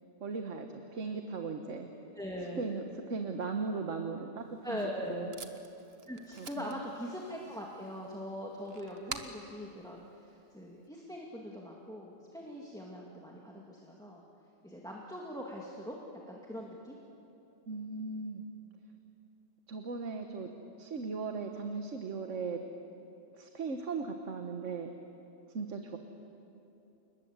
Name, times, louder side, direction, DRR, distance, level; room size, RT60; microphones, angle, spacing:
voice 1, 0.2-1.9 2.6-5.3 6.4-6.8 17.7-18.4 19.7-20.5 20.8-22.6 23.3-24.9 25.5-26.0, right 4 dB, 85° right, 5 dB, 1.6 m, -38 dB
voice 2, 2.1-2.7 4.6-5.3 6.1-14.2 14.6-17.0, equal, 5° left, -2 dB, 2.1 m, -42 dB
Packing tape duct tape, 4.4-10.9, right 5 dB, 55° right, 1.4 m, -49 dB
29.5 x 20.5 x 8.1 m, 2.9 s
omnidirectional pair, 1.2 m